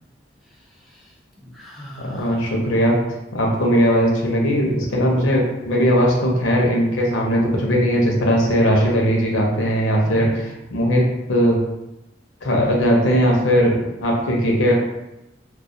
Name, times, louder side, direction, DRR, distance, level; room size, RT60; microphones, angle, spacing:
voice 1, 0.5-2.4 3.4-3.6 5.0-5.3 10.0-10.5, equal, ahead, -5 dB, 0.3 m, -38 dB
voice 2, 2.0-3.0 3.3-10.3 10.7-11.6 12.4-14.7, equal, 90° left, -1 dB, 0.6 m, -18 dB
2.3 x 2.1 x 2.6 m, 0.91 s
head